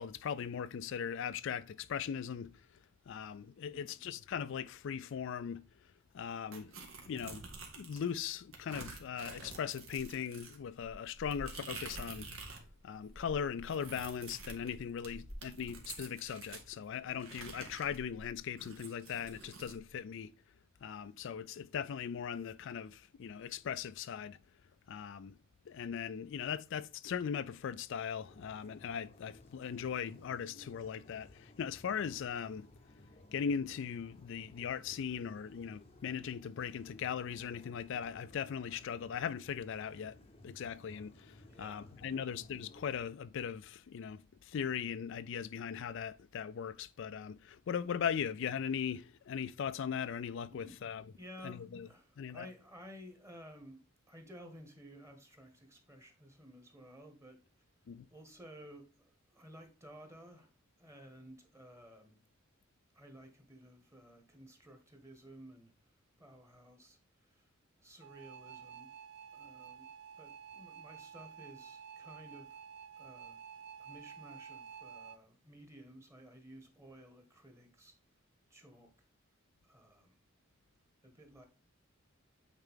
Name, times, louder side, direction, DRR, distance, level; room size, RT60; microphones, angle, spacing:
voice 1, 0.0-2.5 3.1-5.6 6.1-6.8 7.1-7.4 7.7-12.3 12.8-20.3 20.8-24.4 24.9-25.3 25.7-32.7 33.3-40.2 40.4-51.0 51.4-51.9 52.2-52.5 57.9-58.1, left 7 dB, 60° left, 0.4 m, -39 dB
voice 2, 3.7-4.0 41.5-42.3 50.5-50.8 51.1-53.8 54.1-57.4 58.1-62.2 62.9-65.7 66.2-67.5 67.8-68.9 69.3-69.9 70.2-72.6 73.0-73.4 73.8-77.9 78.5-79.1 79.6-80.2 81.0-81.4, equal, 15° right, 1.6 m, -55 dB
sound 1, 6.5-8.1 8.5-12.7 13.0-16.7 17.2-19.8, right 3 dB, 75° right, 1.9 m, -48 dB
sound 2, 28.3-43.1, left 1 dB, 30° left, 0.7 m, -58 dB
sound 3, 68.0-75.2, right 7 dB, 55° right, 0.5 m, -51 dB
9.0 x 4.5 x 3.7 m
head